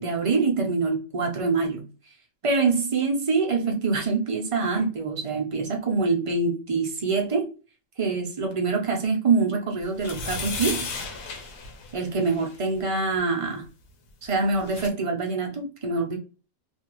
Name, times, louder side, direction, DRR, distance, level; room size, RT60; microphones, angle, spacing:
voice 1, 0.0-1.9 2.4-7.5 8.0-10.8 11.9-13.6 14.2-16.2, right 4 dB, 50° right, 0.4 m, -25 dB
sound 1, 10.0-12.6 14.2-14.3 14.5-14.9, left 4 dB, 90° left, 1.1 m, -34 dB
2.5 x 2.4 x 2.8 m
omnidirectional pair, 1.4 m